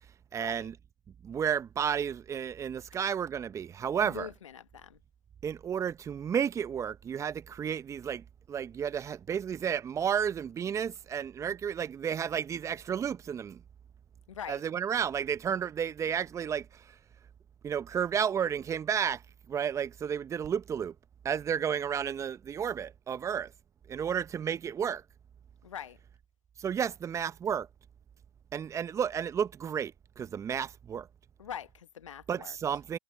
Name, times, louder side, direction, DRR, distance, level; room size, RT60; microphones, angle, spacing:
voice 1, 0.3-0.8 1.2-4.3 5.4-13.6 14.5-17.0 17.6-19.2 19.5-20.9 21.2-23.5 23.9-25.0 26.6-27.7 28.5-31.1 32.3-33.0, right 8 dB, 20° right, 1.1 m, -32 dB
voice 2, 4.0-5.0 14.3-14.6 25.6-26.0 31.4-32.5, left 9 dB, 70° left, 1.4 m, -43 dB
hypercardioid pair, 110°, 16 cm